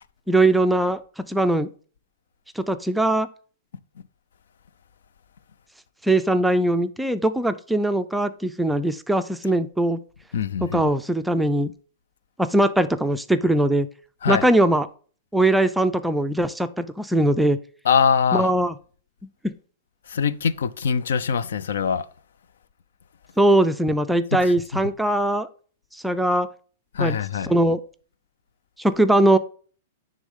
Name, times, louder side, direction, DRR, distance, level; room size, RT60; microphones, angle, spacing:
voice 1, 0.3-1.0 1.3-1.7 2.6-3.3 6.0-10.0 10.6-11.7 12.4-13.9 14.3-14.9 15.3-17.6 18.3-18.7 19.4-19.5 23.4-25.5 26.0-26.5 27.0-27.2 27.5-27.8 28.8-29.4, right 1 dB, 5° right, 0.4 m, -20 dB
voice 2, 10.3-10.9 14.2-14.4 17.8-18.5 20.1-22.1 24.4-24.8 26.9-27.5, left 6 dB, 85° left, 0.5 m, -23 dB
9.7 x 3.7 x 3.6 m
hypercardioid pair, 150°, 0 cm